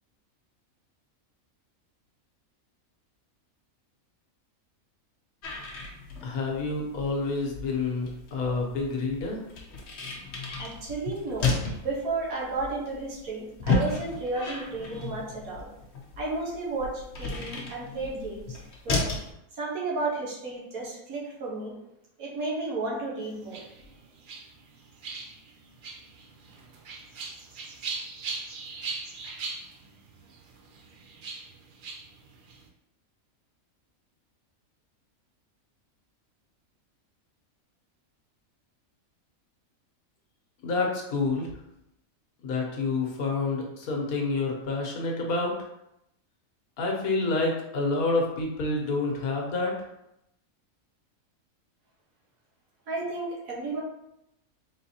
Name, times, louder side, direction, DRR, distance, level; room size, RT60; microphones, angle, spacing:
sound 1, 5.4-19.3, left 3 dB, 55° left, 1.0 m, -33 dB
voice 1, 6.2-9.4 40.6-41.5 42.4-45.5 46.8-49.7, left 3 dB, 85° left, 0 dB, 1.4 m, -28 dB
voice 2, 10.6-11.5 11.8-15.7 16.2-18.6 18.8-19.1 19.6-21.7 22.2-23.6 52.9-53.8, right 3 dB, 75° right, -4 dB, 1.6 m, -32 dB
sound 2, 23.2-32.7, right 4 dB, 60° right, 0.5 m, -40 dB
4.0 x 3.8 x 2.8 m, 0.83 s
omnidirectional pair, 1.5 m